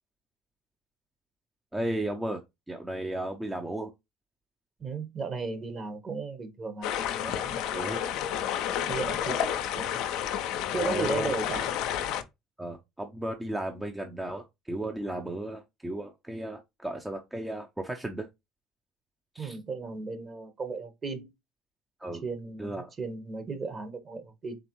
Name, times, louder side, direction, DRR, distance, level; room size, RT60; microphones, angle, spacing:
voice 1, 1.7-2.4 2.7-3.9 7.7-8.0 10.8-11.3 12.6-18.3 19.3-19.6 22.0-22.2 22.6-22.9, right 1 dB, 10° right, 0.6 m, -34 dB
voice 2, 4.8-6.9 7.2-7.6 8.9-9.9 10.7-11.7 19.4-21.3 22.2-24.6, right 4 dB, 35° right, 1.1 m, -35 dB
sound 1, 6.8-12.2, left 10 dB, 65° left, 0.5 m, -30 dB
4.1 x 3.4 x 3.0 m
hypercardioid pair, 70°, 0 cm